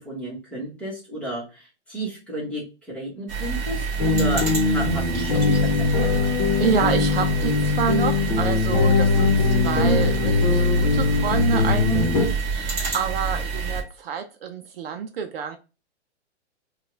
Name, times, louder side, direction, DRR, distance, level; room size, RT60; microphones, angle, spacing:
voice 1, 0.0-6.4, right 1 dB, 5° left, 1.2 m, -33 dB
sound 1, 3.3-13.8, right 4 dB, 20° right, 1.2 m, -28 dB
sound 2, 4.0-12.3, left 4 dB, 40° left, 1.0 m, -21 dB
voice 2, 6.6-15.6, right 7 dB, 55° right, 0.6 m, -28 dB
4.6 x 2.4 x 3.2 m
hypercardioid pair, 155°, 35 cm